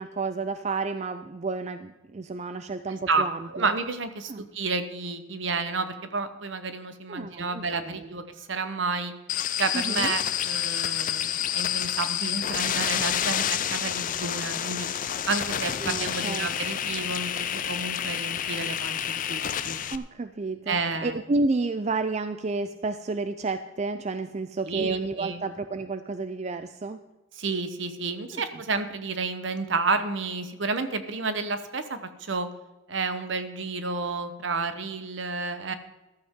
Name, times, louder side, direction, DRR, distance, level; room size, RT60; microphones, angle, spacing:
voice 1, 0.0-3.7 4.3-4.5 7.1-8.1 9.7-10.1 15.8-16.5 19.9-27.0 28.3-28.4, right 3 dB, 30° right, 10 dB, 0.4 m, -31 dB
voice 2, 3.5-9.1 9.6-14.9 15.3-19.8 20.7-21.2 24.7-25.4 27.4-32.5 32.9-35.7, right 4 dB, 60° right, 10 dB, 1.0 m, -30 dB
sound 1, 9.3-20.0, left 10 dB, 40° left, 0.5 m, -29 dB
14.5 x 12.5 x 3.7 m, 1.1 s
head